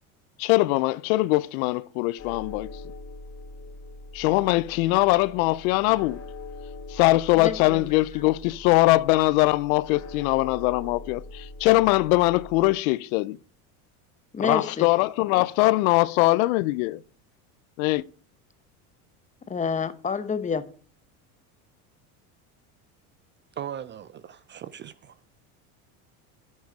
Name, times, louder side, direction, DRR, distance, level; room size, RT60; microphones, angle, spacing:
voice 1, 0.4-2.7 4.1-6.2 6.9-13.4 14.4-17.0 17.8-18.0, left 20 dB, 70° left, 0.6 m, -22 dB
sound 1, 2.2-12.7, left 3 dB, 40° left, 2.0 m, -42 dB
voice 2, 7.4-8.0 14.3-14.9 19.5-20.6, left 5 dB, 15° left, 0.8 m, -28 dB
voice 3, 23.5-25.2, right 9 dB, 30° right, 0.4 m, -38 dB
9.1 x 6.2 x 5.0 m
supercardioid pair, 95°, 43 cm